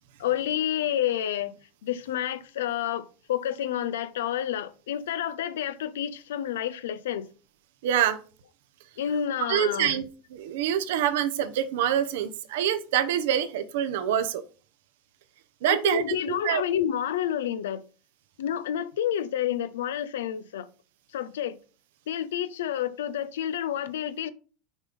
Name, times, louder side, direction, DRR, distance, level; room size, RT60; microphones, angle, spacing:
voice 1, 0.2-1.5 1.8-7.3 9.0-10.0 15.7-17.8 18.4-20.7 21.1-21.6 22.1-24.3, left 10 dB, 90° left, 0.5 m, -29 dB
voice 2, 7.8-8.2 9.5-10.0 10.3-14.4 15.6-16.6, right 10 dB, 80° right, 0.9 m, -26 dB
6.3 x 3.7 x 5.2 m
supercardioid pair, 110°, 0 cm